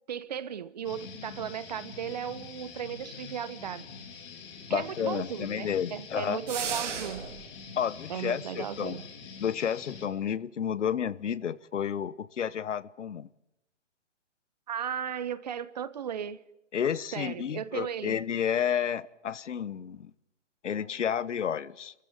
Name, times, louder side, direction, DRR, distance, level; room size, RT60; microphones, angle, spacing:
voice 1, 0.1-3.8 4.7-7.3 8.1-9.0 14.7-16.4 17.1-18.2, right 9 dB, 35° right, 16 dB, 1.0 m, -36 dB
sound 1, 0.8-10.0, left 5 dB, 25° left, 3.3 m, -45 dB
voice 2, 4.7-6.4 7.8-9.0 9.4-13.3 16.7-20.1 20.6-21.9, left 8 dB, 75° left, 18 dB, 1.2 m, -31 dB
sound 2, 6.5-7.5, right 6 dB, 80° right, 3.2 m, -34 dB
28.0 x 15.0 x 9.5 m, 0.88 s
hypercardioid pair, 170°, 36 cm